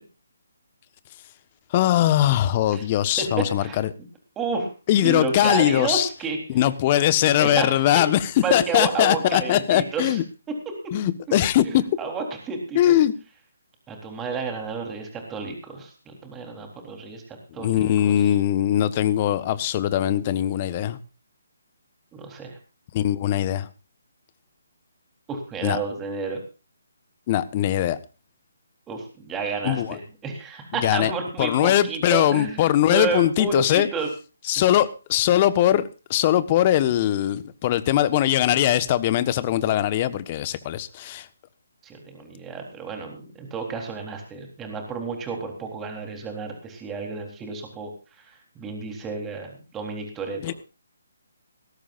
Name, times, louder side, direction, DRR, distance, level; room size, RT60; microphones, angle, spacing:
voice 1, 1.7-3.9 4.9-6.1 6.5-8.2 8.5-10.2 10.9-11.8 12.7-13.1 17.6-21.0 22.9-23.7 25.6-25.8 27.3-28.0 29.6-30.0 30.8-31.1 31.4-33.9 34.5-35.8 36.1-41.3 50.4-50.5, left 12 dB, 30° left, 14 dB, 1.3 m, -21 dB
voice 2, 3.2-3.8 4.4-4.7 5.0-6.4 7.4-7.8 8.4-10.2 10.7-10.8 11.6-13.0 13.9-18.3 22.1-22.6 25.3-26.4 28.9-34.1 34.6-34.7 41.8-47.9 48.2-50.5, right 4 dB, 15° right, 3 dB, 3.8 m, -31 dB
19.5 x 17.0 x 2.6 m, 0.33 s
figure-of-eight pair, 145°, 0 cm